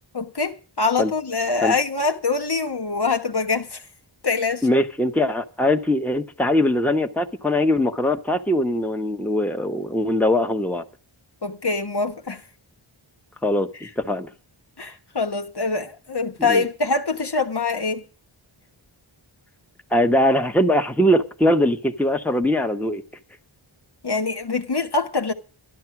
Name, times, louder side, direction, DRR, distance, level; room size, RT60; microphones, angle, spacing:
voice 1, 0.1-3.8 4.2-4.7 11.4-12.4 13.8-13.9 14.8-18.0 24.0-25.3, left 4 dB, 50° left, 1.4 m, -24 dB
voice 2, 4.6-10.8 13.4-13.7 14.0-14.3 16.4-16.6 19.9-23.0, left 1 dB, 5° left, 1.2 m, -21 dB
12.5 x 12.0 x 5.9 m
wide cardioid pair, 50°, 49 cm